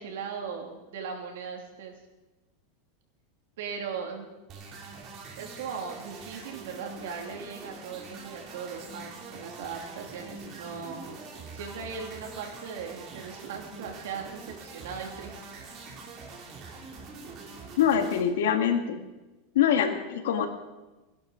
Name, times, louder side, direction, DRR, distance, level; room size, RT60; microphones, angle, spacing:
voice 1, 0.0-1.9 3.6-4.3 5.4-11.0 11.5-15.4, right 6 dB, 75° right, 2 dB, 2.9 m, -38 dB
sound 1, 4.5-18.2, right 4 dB, 35° right, 2.6 m, -44 dB
voice 2, 17.8-19.0 19.6-20.5, left 8 dB, 90° left, 6 dB, 1.9 m, -24 dB
17.0 x 11.0 x 5.1 m, 1.1 s
supercardioid pair, 160°, 0 cm